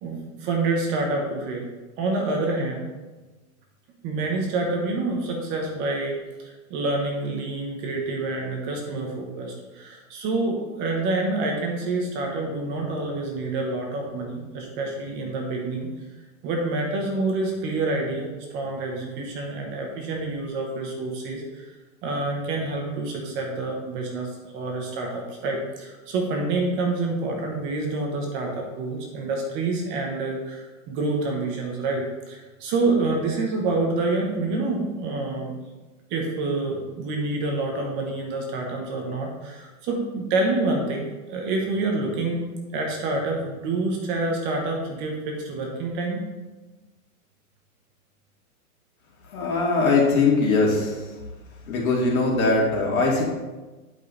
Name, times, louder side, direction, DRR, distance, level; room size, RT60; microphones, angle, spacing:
voice 1, 0.0-1.7 2.0-2.8 4.0-15.9 16.4-21.6 22.0-35.5 36.1-42.4 42.7-46.2, right 2 dB, 25° right, 1 dB, 1.2 m, -27 dB
voice 2, 49.3-50.9 51.7-53.2, left 3 dB, 70° left, -3 dB, 2.8 m, -21 dB
9.8 x 5.4 x 4.1 m, 1.2 s
supercardioid pair, 160°, 43 cm